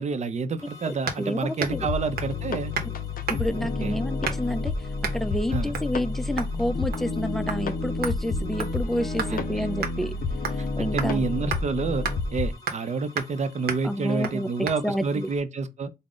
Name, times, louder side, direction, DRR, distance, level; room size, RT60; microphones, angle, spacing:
voice 1, 0.0-2.7 3.6-4.0 5.5-5.7 9.3-9.7 10.8-12.1 12.3-15.9, right 4 dB, 50° right, 0.5 m, -29 dB
sound 1, 0.6-15.4, left 2 dB, 20° left, 1.1 m, -51 dB
sound 2, 1.1-1.3 1.6-1.9 2.2-2.4 2.7-2.9 3.3-3.6 4.2-4.6 5.0-5.2 5.7-5.9 6.4-6.6 6.9-7.2 7.5-7.6 8.0-9.4 9.8-10.0 10.5-10.7 11.0-11.1 11.5-11.6 12.0-12.2 12.7-12.9 13.2-13.4 13.7-13.9 14.2-14.4 14.7-14.8, right 6 dB, 80° right, 0.7 m, -32 dB
voice 2, 1.2-1.9 2.8-2.9 3.3-10.1 10.5-11.3 13.8-14.5 14.8-15.3, equal, ahead, 0.4 m, -29 dB
sound 3, 1.7-12.5, left 3 dB, 65° left, 0.5 m, -30 dB
3.6 x 2.0 x 3.6 m
cardioid pair, 85°, 16 cm